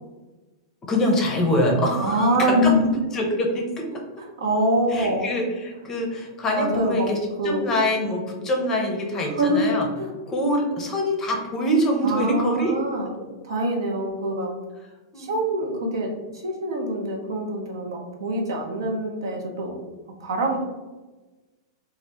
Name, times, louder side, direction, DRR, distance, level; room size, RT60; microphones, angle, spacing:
voice 1, 0.9-2.3 2.6-2.7 3.1-3.6 4.9-7.2 7.4-9.9 10.3-12.7 15.1-15.3, equal, 20° left, 1 dB, 0.5 m, -24 dB
voice 2, 2.0-2.9 4.4-5.3 6.5-7.1 7.4-7.6 9.1-9.6 10.0-10.1 12.0-14.5 15.2-19.9 20.2-20.6, equal, 85° right, 1 dB, 0.8 m, -25 dB
2.8 x 2.4 x 3.3 m, 1.2 s
supercardioid pair, 155°, 2 cm